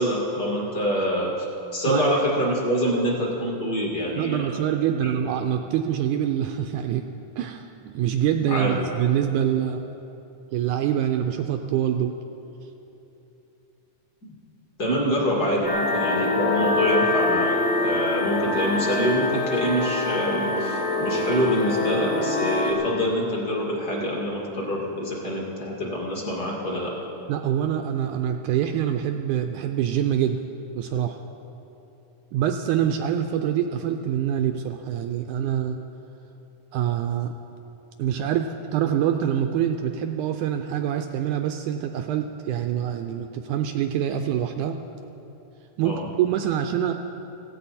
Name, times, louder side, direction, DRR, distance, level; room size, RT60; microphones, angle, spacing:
voice 1, 0.0-1.5 1.7-4.6 5.0-5.2 8.5-8.9 14.2-14.3 14.8-27.0 45.8-46.1, equal, 30° left, -3 dB, 2.4 m, -25 dB
voice 2, 4.2-7.1 7.4-9.9 10.5-12.1 27.3-30.4 30.8-31.2 32.3-35.8 36.7-37.3 38.0-44.8 45.8-46.9, right 10 dB, 80° right, 6 dB, 1.8 m, -25 dB
sound 1, 15.6-22.7, left 2 dB, 50° left, 2.0 m, -25 dB
16.5 x 16.0 x 4.2 m, 3.0 s
omnidirectional pair, 4.0 m